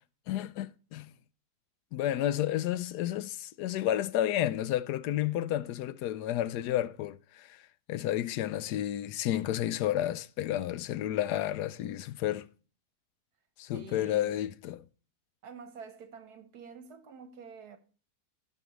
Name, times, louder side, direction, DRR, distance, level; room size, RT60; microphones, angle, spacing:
voice 1, 0.3-1.1 1.9-7.5 7.9-12.5 13.6-14.8, left 12 dB, 90° left, 1.2 m, -31 dB
voice 2, 13.7-14.4 15.4-17.8, right 6 dB, 75° right, 1.7 m, -48 dB
16.0 x 5.5 x 3.1 m
omnidirectional pair, 1.7 m